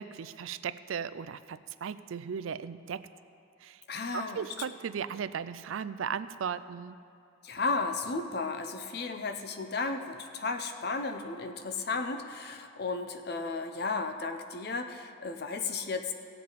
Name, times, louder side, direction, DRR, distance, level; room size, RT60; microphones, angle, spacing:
voice 1, 0.0-3.1 3.6-3.8 4.1-7.0, right 7 dB, 90° right, 14 dB, 0.4 m, -36 dB
voice 2, 3.9-4.4 7.4-16.1, left 4 dB, 55° left, 7 dB, 0.7 m, -34 dB
17.0 x 7.5 x 4.1 m, 2.5 s
head